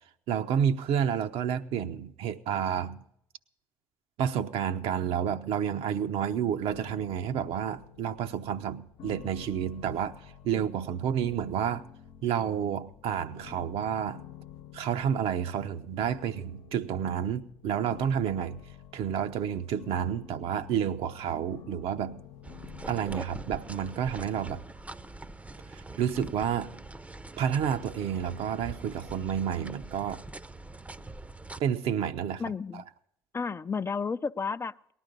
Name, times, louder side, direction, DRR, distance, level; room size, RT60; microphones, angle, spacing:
voice 1, 0.3-3.0 4.2-11.8 12.2-14.2 14.7-18.6 18.9-22.2 22.9-24.6 25.7-26.8 27.4-30.3 31.6-32.8, right 8 dB, 60° right, 0.8 m, -30 dB
sound 1, 6.7-25.6, left 9 dB, 65° left, 0.9 m, -50 dB
sound 2, 22.4-31.6, right 2 dB, 10° right, 0.7 m, -43 dB
voice 2, 32.4-32.8 33.3-34.9, left 5 dB, 25° left, 0.5 m, -32 dB
19.0 x 11.5 x 5.3 m
hypercardioid pair, 60°, 11 cm